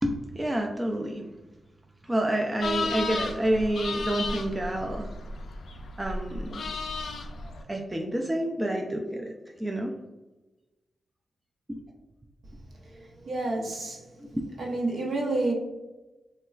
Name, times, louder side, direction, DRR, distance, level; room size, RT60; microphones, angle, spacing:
voice 1, 0.0-1.2 2.0-5.1 6.0-6.6 7.3-9.3 9.6-9.9 11.7-11.8, right 1 dB, 15° right, 1 dB, 0.3 m, -29 dB
sound 1, 2.6-7.6, left 3 dB, 70° left, 0.3 m, -34 dB
voice 2, 13.3-14.0 14.6-15.5, right 2 dB, 60° right, -2 dB, 0.7 m, -28 dB
3.9 x 2.2 x 2.3 m, 1.1 s
cardioid pair, 95°, 0 cm